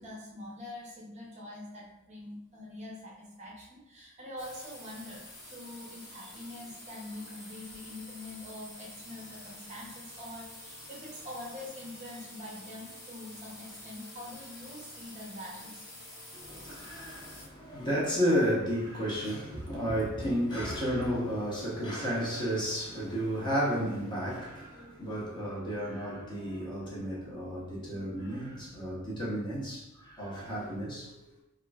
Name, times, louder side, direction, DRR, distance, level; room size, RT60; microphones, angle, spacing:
voice 1, 0.0-15.8, left 1 dB, 30° right, -4 dB, 0.6 m, -44 dB
sound 1, 4.4-17.5, left 1 dB, 45° left, 1.3 m, -48 dB
voice 2, 16.3-31.1, equal, 20° left, -6 dB, 0.7 m, -32 dB
2.9 x 2.4 x 2.3 m, 0.92 s
head